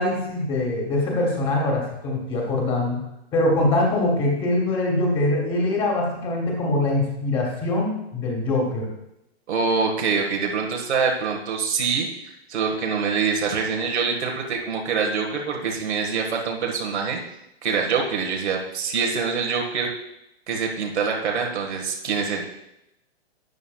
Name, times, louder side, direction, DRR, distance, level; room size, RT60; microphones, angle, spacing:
voice 1, 0.0-3.0 3.3-8.9, left 2 dB, 15° left, -2 dB, 1.5 m, -23 dB
voice 2, 9.5-12.1 12.5-17.2 17.6-19.9 20.5-22.4, right 5 dB, 85° right, 1 dB, 1.6 m, -25 dB
12.0 x 8.3 x 2.3 m, 0.85 s
hypercardioid pair, 165°, 33 cm